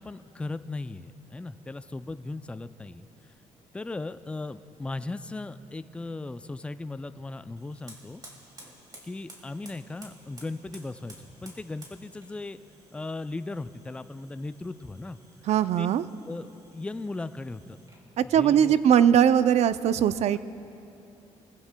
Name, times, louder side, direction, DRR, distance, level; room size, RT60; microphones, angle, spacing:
voice 1, 0.0-3.1 3.7-8.2 9.0-11.2 11.4-12.6 12.9-15.2 15.8-15.9 16.3-17.8 18.2-18.8, left 2 dB, 10° left, 12 dB, 0.3 m, -37 dB
Fire, 7.6-18.1, right 1 dB, 30° right, 2.5 m, -54 dB
voice 2, 15.5-16.1 18.2-20.4, right 9 dB, 65° right, 14 dB, 0.4 m, -20 dB
22.5 x 15.0 x 2.2 m, 2.7 s
cardioid pair, 115°, 12 cm